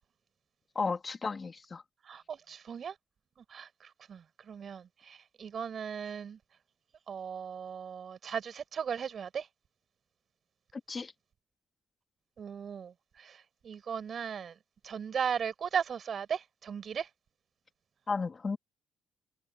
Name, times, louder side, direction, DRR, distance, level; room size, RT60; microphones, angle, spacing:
voice 1, 0.7-1.8 10.9-11.1 18.1-18.6, left 4 dB, 35° left, 2.7 m, -33 dB
voice 2, 2.1-2.9 3.5-6.4 7.1-9.5 12.4-12.9 13.2-13.3 13.6-14.5 14.8-17.1, right 7 dB, 50° right, 7.7 m, -37 dB
cardioid pair, 90°, 0 cm